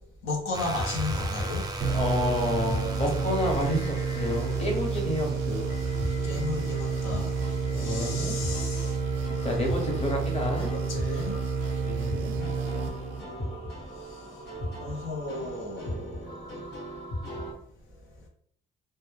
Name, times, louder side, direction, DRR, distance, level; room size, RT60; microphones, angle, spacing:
voice 1, 0.2-1.6 6.2-7.3 7.7-9.0 9.5-9.6 10.6-11.5 12.0-12.5 14.8-16.5, left 3 dB, 85° left, 1 dB, 0.7 m, -35 dB
sound 1, 0.5-17.5, left 1 dB, 60° left, 1.0 m, -38 dB
sound 2, 0.5-7.3, right 2 dB, 20° right, 0.4 m, -41 dB
sound 3, 1.8-13.5, right 5 dB, 75° right, 0.5 m, -30 dB
voice 2, 1.9-5.8 7.7-8.4 9.4-10.8 11.9-12.3 15.8-16.0, left 1 dB, 30° left, 1 dB, 0.8 m, -29 dB
2.1 x 2.1 x 3.2 m, 0.64 s
cardioid pair, 90°, 20 cm